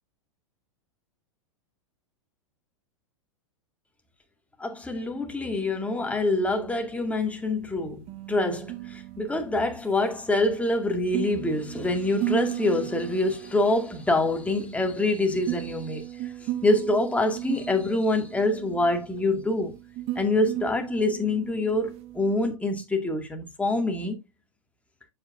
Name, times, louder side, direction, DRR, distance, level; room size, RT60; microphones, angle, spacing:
voice 1, 4.6-16.3 16.6-19.8 20.2-24.2, left 2 dB, 10° left, 2.0 m, -26 dB
sound 1, 6.5-22.6, right 15 dB, 40° right, 1.0 m, -37 dB
7.9 x 7.6 x 2.5 m
hypercardioid pair, 100°, 17 cm